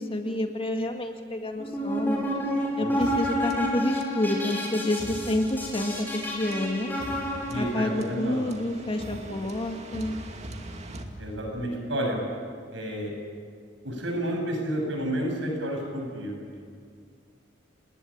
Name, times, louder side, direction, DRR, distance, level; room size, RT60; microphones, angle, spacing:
voice 1, 0.0-2.2 2.8-6.9 7.6-10.2, left 1 dB, 30° left, 4 dB, 2.0 m, -29 dB
sound 1, 1.6-7.9, left 1 dB, 10° left, 6.4 m, -30 dB
voice 2, 2.8-3.1 7.5-8.5 11.2-12.2 12.7-13.1 13.8-16.6, right 1 dB, 70° right, 1 dB, 7.9 m, -31 dB
sound 2, 3.0-11.8, right 1 dB, 35° right, 2.4 m, -43 dB
29.0 x 19.5 x 8.9 m, 2.2 s
head